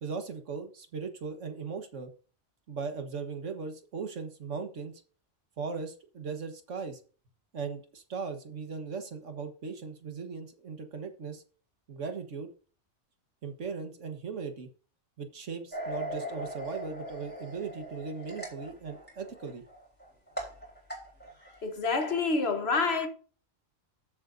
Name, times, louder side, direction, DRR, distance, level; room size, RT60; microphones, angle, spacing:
voice 1, 0.0-2.1 2.7-4.9 5.6-7.0 7.5-11.4 11.9-12.5 13.4-14.7 15.2-19.6, right 5 dB, 80° right, 1.7 m, -38 dB
sound 1, 15.7-21.6 21.9-22.1, right 1 dB, 10° left, 3.8 m, -40 dB
voice 2, 21.6-23.1, left 4 dB, 60° left, 1.4 m, -27 dB
13.5 x 7.4 x 2.7 m
omnidirectional pair, 1.2 m